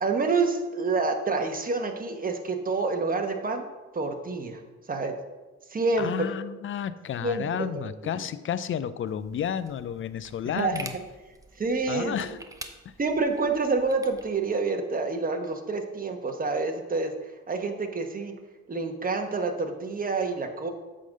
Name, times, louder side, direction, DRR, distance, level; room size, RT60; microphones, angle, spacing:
voice 1, 0.0-3.6 3.9-4.6 4.9-5.1 5.7-6.3 7.2-8.1 10.5-10.9 11.6-12.3 13.0-17.1 17.5-18.3 18.7-20.7, right 3 dB, 30° right, 4 dB, 1.1 m, -28 dB
voice 2, 6.0-11.0 11.9-12.4, left 9 dB, 45° left, 15 dB, 0.5 m, -31 dB
sound 1, 9.1-14.3, right 2 dB, 10° right, 0.7 m, -46 dB
8.4 x 3.9 x 6.4 m, 1.2 s
cardioid pair, 90°, 30 cm